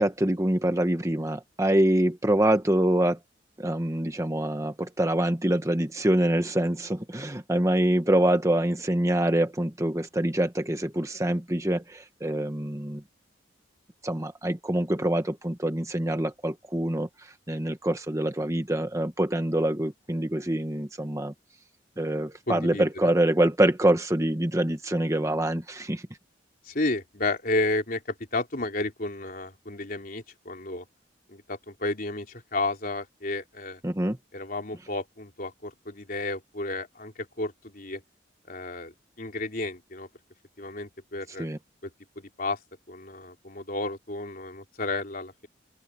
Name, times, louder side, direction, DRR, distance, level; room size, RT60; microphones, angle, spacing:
voice 1, 0.0-3.2 3.6-13.0 14.0-17.1 17.5-21.3 22.0-26.0 33.8-34.2 41.4-41.6, right 1 dB, 15° right, 1.2 m, -25 dB
voice 2, 22.5-22.8 26.7-28.0 28.3-30.8 31.3-33.8 34.3-38.0 38.5-38.9 39.2-40.1 40.6-41.5 41.8-41.9 42.2-42.6 42.9-45.5, left 2 dB, 50° left, 3.6 m, -32 dB
open air
head